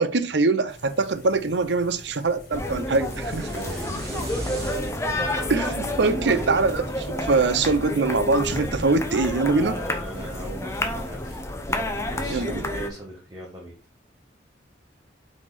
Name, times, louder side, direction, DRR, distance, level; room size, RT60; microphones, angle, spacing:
voice 1, 0.0-3.5 5.5-9.8 12.3-12.7, right 3 dB, 70° right, 0.7 m, -23 dB
sound 1, 0.7-11.4, left 1 dB, 50° left, 1.8 m, -47 dB
sound 2, 2.5-12.9, left 1 dB, 15° left, 0.8 m, -30 dB
sound 3, 2.9-7.0, equal, 35° right, 2.5 m, -38 dB
voice 2, 3.5-4.6 5.8-6.6 8.5-8.7 9.5-13.7, right 1 dB, 20° right, 1.4 m, -39 dB
5.9 x 4.3 x 4.2 m
head